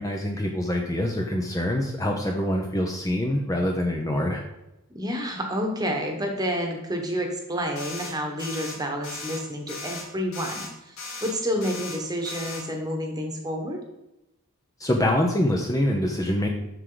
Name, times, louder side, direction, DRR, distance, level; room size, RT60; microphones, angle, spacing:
voice 1, 0.0-4.4 14.8-16.5, left 1 dB, 15° left, 1 dB, 0.7 m, -25 dB
voice 2, 4.9-13.8, equal, 20° right, 2 dB, 1.2 m, -29 dB
sound 1, 7.8-8.1 8.4-8.7 9.0-9.4 9.7-10.0 10.3-10.7 11.0-11.3 11.6-12.0 12.3-12.6, left 3 dB, 80° left, 2.7 m, -37 dB
7.8 x 6.5 x 3.9 m, 0.92 s
head